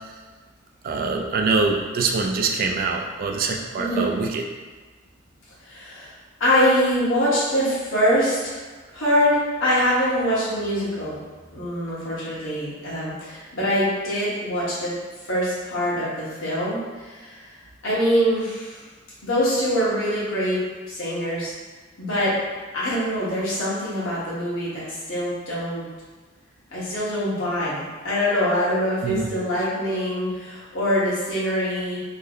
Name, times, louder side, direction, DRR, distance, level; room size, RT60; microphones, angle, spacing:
voice 1, 0.8-4.4 29.0-29.3, right 4 dB, 45° right, 2 dB, 0.3 m, -24 dB
voice 2, 3.8-4.1 5.7-6.1 6.4-8.6 8.9-11.2 11.5-14.9 15.3-17.4 17.8-18.8 19.2-21.5 22.0-22.3 22.7-25.9 26.7-32.0, equal, 75° left, -9 dB, 1.3 m, -24 dB
3.2 x 2.1 x 3.7 m, 1.4 s
head